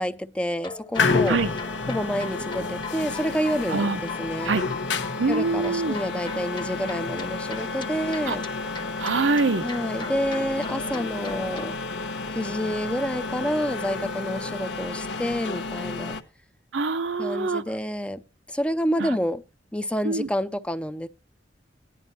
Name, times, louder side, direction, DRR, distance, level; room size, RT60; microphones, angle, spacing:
voice 1, 0.0-1.4 1.9-4.6 5.3-8.4 9.6-11.7 12.3-16.2 17.2-18.2 18.5-19.4 19.7-21.1, equal, 5° left, 0.5 m, -28 dB
sound 1, 0.6-11.7, left 3 dB, 25° left, 1.1 m, -41 dB
sound 2, 0.9-16.2, left 4 dB, 70° left, 1.1 m, -30 dB
voice 2, 3.7-4.0 4.4-4.6 5.2-6.0 8.3-8.4 9.0-9.7 16.7-17.6 19.0-19.2 20.0-20.3, right 3 dB, 85° right, 0.8 m, -24 dB
18.0 x 11.0 x 2.7 m
head